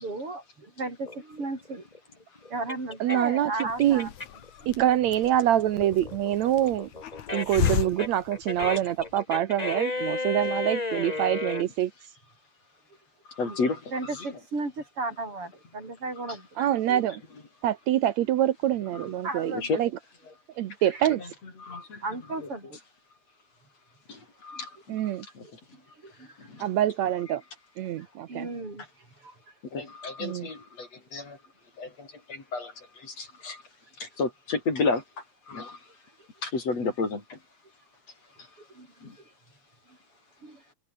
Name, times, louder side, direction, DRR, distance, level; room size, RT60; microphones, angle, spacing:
voice 1, 0.0-1.9 2.5-4.1 4.6-4.7 13.4-13.6 13.9-16.5 19.2-19.7 20.9-21.0 22.0-22.8 25.4-26.4 28.3-28.8 29.2-29.3 38.7-38.9 40.4-40.6, right 2 dB, 50° right, 7.9 m, -35 dB
sound 1, 1.1-4.5 4.9-11.6, left 3 dB, 15° left, 1.7 m, -33 dB
voice 2, 3.0-4.1 4.7-6.9 7.3-11.9 16.6-17.2 17.6-19.9 20.6-21.2 24.9-25.3 26.6-27.4 27.8-28.5 30.2-30.5, right 12 dB, 75° right, 2.3 m, -25 dB
Hiss, 3.7-9.2, left 10 dB, 80° left, 3.0 m, -34 dB
voice 3, 13.4-14.3 16.3-16.4 16.9-17.0 18.9-19.1 19.5-19.8 21.2-21.3 21.6-22.0 24.1-24.7 25.3-25.6 26.4-26.7 29.7-31.4 31.8-33.6 34.0-35.0 35.5-35.8 36.4-37.4 39.0-39.2, left 3 dB, 60° left, 6.7 m, -32 dB
omnidirectional pair, 3.3 m